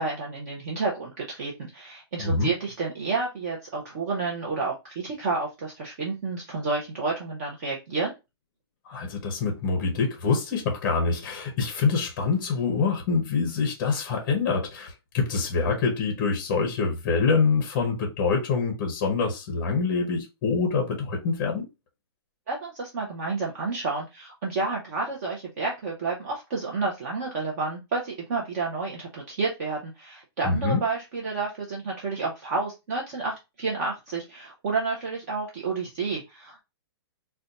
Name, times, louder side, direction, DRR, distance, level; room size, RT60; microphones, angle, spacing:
voice 1, 0.0-8.1 22.5-36.6, right 4 dB, 40° right, 0.6 m, -30 dB
voice 2, 2.2-2.5 8.9-21.6 30.4-30.8, left 4 dB, 25° left, 0.6 m, -25 dB
2.5 x 2.2 x 3.9 m
hypercardioid pair, 175°, 14 cm